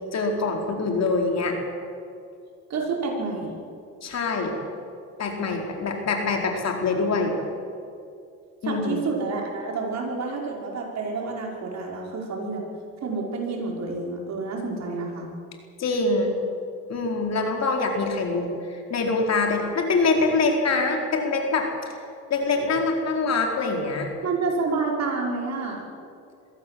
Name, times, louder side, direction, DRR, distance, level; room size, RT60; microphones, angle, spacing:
voice 1, 0.1-1.6 4.0-4.5 5.2-7.3 8.6-9.0 15.8-16.3 16.9-21.7 22.3-24.1, left 3 dB, 60° left, 2 dB, 4.4 m, -24 dB
voice 2, 2.7-3.6 8.6-12.6 13.0-15.3 24.2-25.9, right 4 dB, 60° right, -1 dB, 5.7 m, -29 dB
23.0 x 16.5 x 7.8 m, 2.4 s
cardioid pair, 90°, 30 cm